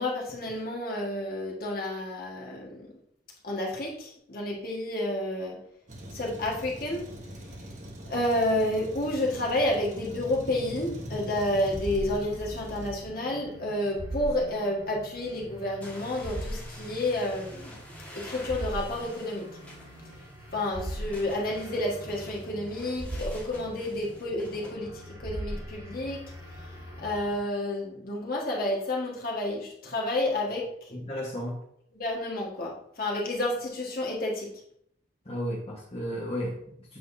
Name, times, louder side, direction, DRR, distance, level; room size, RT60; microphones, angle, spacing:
voice 1, 0.0-3.0 3.4-5.6 6.1-7.1 8.0-17.8 18.1-19.5 20.5-26.3 27.0-30.9 31.9-34.5, left 1 dB, 50° left, -2 dB, 1.6 m, -30 dB
Truck, 5.9-12.9, equal, 40° right, 1.2 m, -44 dB
sound 1, 10.0-27.4, equal, 20° right, 2.8 m, -40 dB
sound 2, 15.8-24.8, left 1 dB, 5° left, 1.6 m, -49 dB
voice 2, 31.1-31.6 35.2-37.0, equal, 30° left, -5 dB, 1.3 m, -33 dB
7.9 x 6.1 x 2.7 m, 0.69 s
head